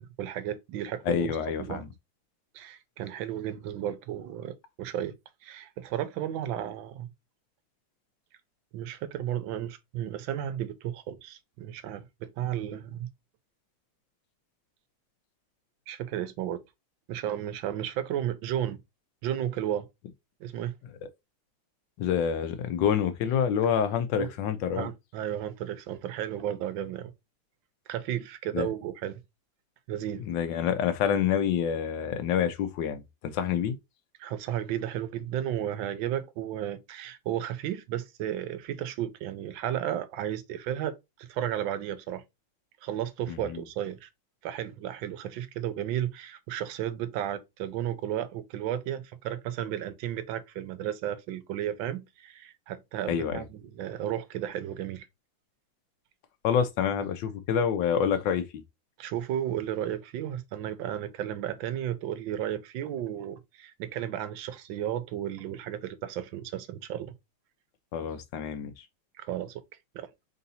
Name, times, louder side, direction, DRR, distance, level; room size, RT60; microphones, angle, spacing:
voice 1, 0.0-1.8 2.5-5.1 5.4-7.1 8.7-13.1 15.9-16.6 17.1-18.8 19.2-19.9 20.4-20.7 24.2-24.3 24.7-27.1 27.9-29.2 29.9-30.3 34.2-42.2 42.8-44.1 44.4-55.1 59.0-67.1 69.2-69.6 69.9-70.1, right 11 dB, 85° right, 1.4 m, -33 dB
voice 2, 1.1-1.9 22.0-24.9 28.5-28.7 30.3-33.7 43.3-43.6 53.1-53.4 56.4-58.6 67.9-68.7, left 8 dB, 80° left, 1.3 m, -27 dB
3.7 x 2.7 x 4.0 m
omnidirectional pair, 2.0 m